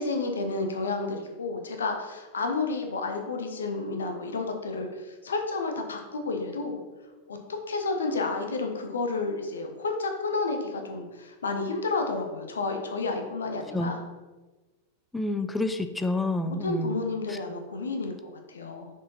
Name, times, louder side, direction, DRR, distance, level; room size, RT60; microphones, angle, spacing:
voice 1, 0.0-6.8 7.3-7.4 7.7-14.0 16.4-18.9, left 3 dB, 70° left, 4 dB, 0.9 m, -31 dB
voice 2, 15.1-17.0 17.3-17.4, left 2 dB, 10° left, 9 dB, 0.4 m, -28 dB
6.1 x 4.8 x 4.2 m, 1.2 s
figure-of-eight pair, 90°, 0 cm